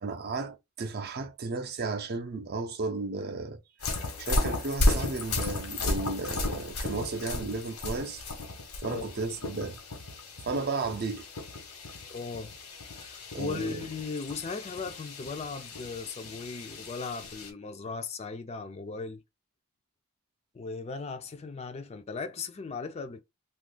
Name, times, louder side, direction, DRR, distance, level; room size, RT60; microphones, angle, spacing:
voice 1, 0.0-3.6 3.9-8.2 8.8-9.8 10.4-11.3 13.3-13.9, right 3 dB, 45° right, 0.5 m, -34 dB
sound 1, 3.8-17.5, left 2 dB, 85° left, 1.0 m, -34 dB
voice 2, 12.1-12.5 12.9-19.2 20.5-23.2, left 4 dB, 30° left, 0.4 m, -37 dB
2.7 x 2.4 x 3.8 m
head